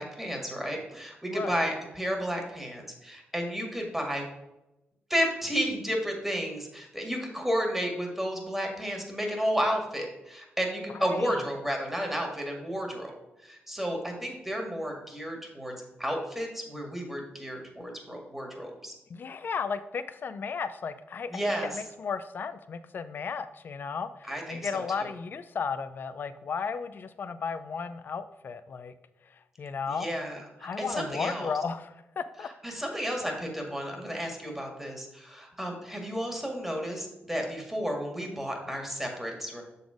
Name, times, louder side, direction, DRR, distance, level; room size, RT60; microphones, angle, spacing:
voice 1, 0.0-4.3 5.1-18.9 21.3-21.8 24.3-25.1 29.9-31.5 32.6-39.6, equal, 5° right, 1 dB, 1.8 m, -32 dB
voice 2, 1.3-1.6 11.1-11.3 19.1-28.9 29.6-30.1 30.6-32.5, left 5 dB, 55° left, 12 dB, 0.5 m, -34 dB
6.7 x 4.1 x 4.9 m, 0.94 s
cardioid pair, 75°, 4 cm